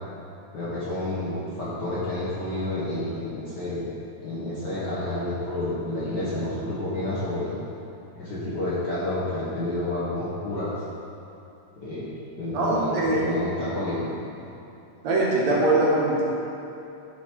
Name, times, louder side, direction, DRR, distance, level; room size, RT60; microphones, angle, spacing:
voice 1, 0.5-3.9 4.2-7.6 8.1-10.7 11.8-12.1 12.3-14.1, left 1 dB, 50° left, -10 dB, 1.4 m, -29 dB
voice 2, 12.5-13.2 15.0-16.2, right 2 dB, 70° right, -4 dB, 2.4 m, -22 dB
10.5 x 5.2 x 4.6 m, 2.8 s
omnidirectional pair, 3.5 m